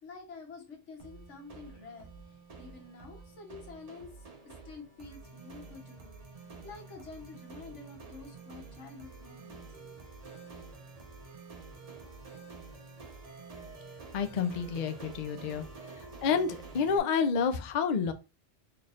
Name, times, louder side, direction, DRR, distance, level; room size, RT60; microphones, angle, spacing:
voice 1, 0.0-4.1 4.4-10.0, left 4 dB, 85° left, 2 dB, 1.4 m, -49 dB
sound 1, 1.0-17.0, right 4 dB, 35° right, 0.9 m, -49 dB
voice 2, 14.1-15.7 16.2-18.1, left 6 dB, 55° left, 8 dB, 0.5 m, -29 dB
4.1 x 3.2 x 2.4 m, 0.29 s
omnidirectional pair, 1.2 m